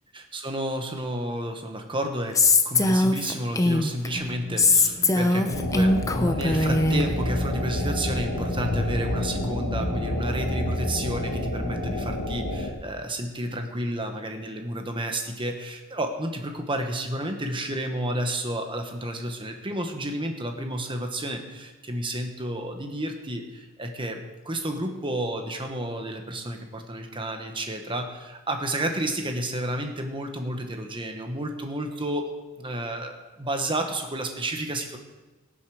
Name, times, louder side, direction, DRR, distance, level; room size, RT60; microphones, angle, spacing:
voice 1, 0.1-2.4 2.6-32.3 32.6-35.0, right 1 dB, 20° right, 4 dB, 1.3 m, -31 dB
Female speech woman speaking, 2.4-4.1 4.6-7.1, left 2 dB, 15° left, 0.6 m, -21 dB
sound 1, 4.1-11.9, right 1 dB, 85° right, 4.3 m, -37 dB
sound 2, 5.5-12.7, left 1 dB, 85° left, 1.7 m, -29 dB
18.0 x 8.3 x 4.9 m, 1.2 s
head